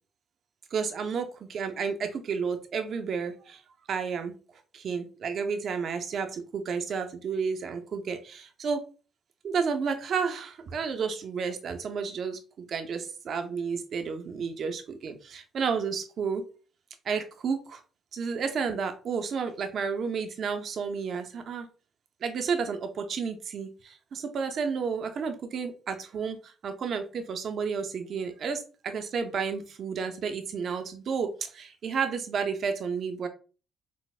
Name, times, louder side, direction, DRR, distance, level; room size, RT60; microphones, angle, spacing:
voice 1, 0.7-3.6 3.9-4.3 4.7-8.8 9.4-12.4 12.7-16.4 17.1-17.8 18.1-21.7 22.2-33.3, right 5 dB, 60° right, 7 dB, 0.4 m, -31 dB
4.0 x 2.0 x 2.3 m, 0.36 s
cardioid pair, 90°, 0 cm